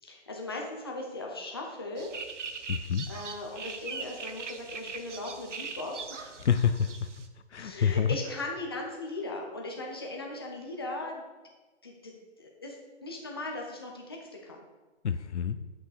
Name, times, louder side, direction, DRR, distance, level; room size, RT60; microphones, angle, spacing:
voice 1, 0.0-2.1 2.6-6.4 7.6-11.3 11.8-12.1 12.4-14.6, left 2 dB, 20° left, 0 dB, 0.7 m, -38 dB
sound 1, 2.0-7.3, right 5 dB, 75° right, 1.0 m, -41 dB
voice 2, 2.7-3.1 6.4-6.9 7.5-8.2 15.0-15.6, left 7 dB, 70° left, 11 dB, 0.7 m, -27 dB
9.0 x 6.2 x 4.9 m, 1.2 s
hypercardioid pair, 175°, 36 cm